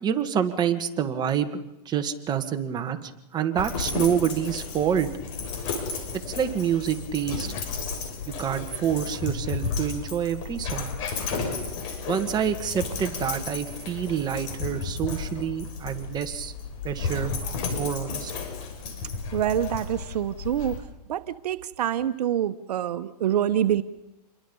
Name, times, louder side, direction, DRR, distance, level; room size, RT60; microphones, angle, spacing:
voice 1, 0.0-1.5 1.9-5.1 6.3-7.5 8.4-10.9 12.1-16.5 16.8-17.3 17.8-18.3, right 8 dB, 20° right, 7 dB, 1.8 m, -27 dB
Dog, 3.6-20.8, left 4 dB, 45° left, 6.4 m, -33 dB
voice 2, 19.3-20.8 21.1-23.8, right 10 dB, 75° right, 11 dB, 1.1 m, -26 dB
28.5 x 22.0 x 5.5 m, 0.92 s
hypercardioid pair, 140°, 21 cm